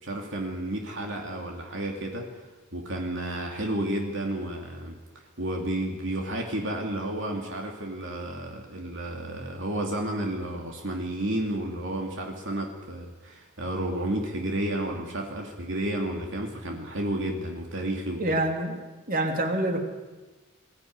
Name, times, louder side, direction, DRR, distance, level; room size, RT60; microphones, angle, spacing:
voice 1, 0.0-2.3 2.7-18.4, right 1 dB, 60° right, 1 dB, 2.7 m, -31 dB
voice 2, 18.2-18.8 19.1-19.8, right 1 dB, 40° right, 3 dB, 3.0 m, -26 dB
22.0 x 15.0 x 9.6 m, 1.2 s
head